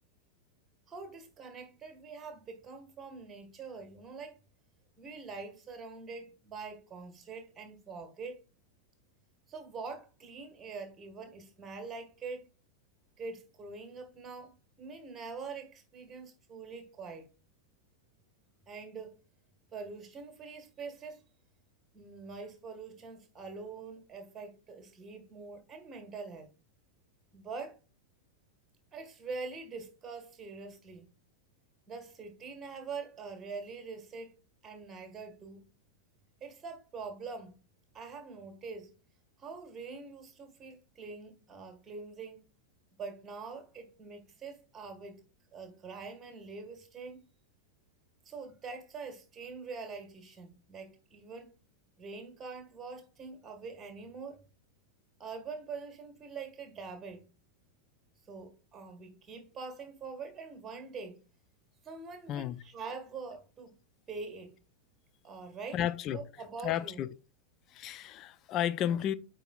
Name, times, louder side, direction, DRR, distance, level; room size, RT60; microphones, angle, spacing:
voice 1, 0.9-4.4 5.0-8.4 9.5-12.5 13.2-17.3 18.7-19.2 19.7-21.2 21.9-26.5 27.3-27.8 28.9-31.1 31.9-34.4 34.6-35.7 36.4-37.6 37.9-38.9 39.4-42.4 43.0-45.2 45.5-47.3 48.2-51.5 52.0-54.4 55.2-57.2 58.3-61.2 61.8-63.8 64.1-64.5 65.2-65.8 66.1-67.0, right 4 dB, 20° right, 1.7 m, -44 dB
voice 2, 62.3-62.6 65.7-66.2 66.6-67.1 67.7-69.1, left 10 dB, 35° left, 0.5 m, -32 dB
9.0 x 4.5 x 2.4 m
figure-of-eight pair, 90°, 0 cm